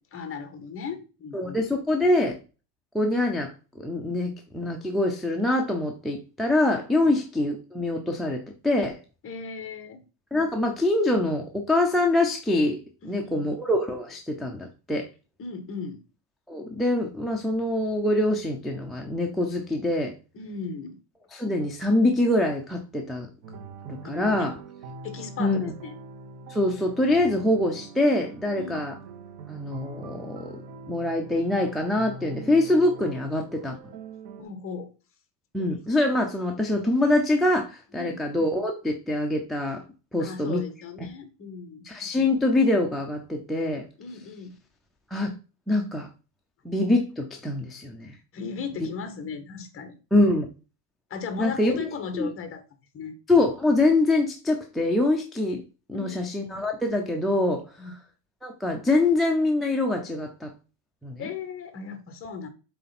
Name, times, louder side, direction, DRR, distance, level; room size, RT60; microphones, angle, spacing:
voice 1, 0.1-1.6 7.0-7.2 9.2-10.0 13.0-13.5 15.4-16.0 20.3-21.0 24.0-24.5 25.0-26.0 28.6-28.9 34.4-34.9 38.0-38.2 40.2-41.8 44.0-44.5 48.3-50.0 51.1-52.6 52.9-53.1 55.9-56.3 57.8-58.0 61.2-62.5, left 5 dB, 25° left, 8 dB, 1.4 m, -37 dB
voice 2, 1.3-2.4 2.9-3.5 3.8-9.0 10.3-12.8 13.0-15.1 16.5-20.1 21.3-23.3 23.8-24.5 25.4-25.7 26.5-28.9 29.5-30.6 30.9-33.8 35.5-39.8 40.1-40.6 41.8-43.8 45.1-45.3 45.7-46.1 46.6-48.1 50.1-50.5 51.4-51.7 52.2-52.3 53.3-55.6 55.9-57.6 58.4-60.5 61.0-61.3, left 2 dB, ahead, 0 dB, 0.3 m, -24 dB
sound 1, 23.4-34.4, right 3 dB, 80° right, 2.2 m, -43 dB
7.7 x 3.4 x 5.8 m, 0.32 s
cardioid pair, 155°, 49 cm